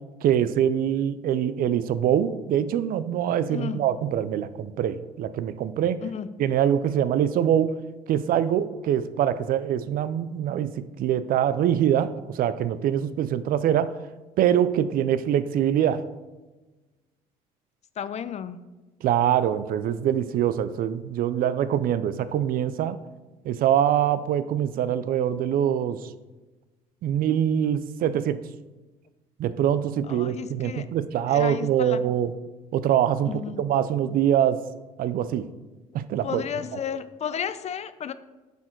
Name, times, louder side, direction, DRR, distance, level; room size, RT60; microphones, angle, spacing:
voice 1, 0.2-6.0 6.4-7.7 8.1-10.7 11.0-13.9 14.4-16.0 19.0-23.0 23.5-26.0 27.0-28.4 29.4-32.3 32.7-34.6 35.0-35.5 35.9-36.4, right 10 dB, 65° right, 14 dB, 0.4 m, -24 dB
voice 2, 3.5-3.8 6.0-6.3 18.0-18.6 30.0-30.9 31.3-32.0 33.2-33.6 36.2-38.1, left 8 dB, 45° left, 14 dB, 0.5 m, -33 dB
8.1 x 4.4 x 4.5 m, 1.2 s
supercardioid pair, 80°, 16 cm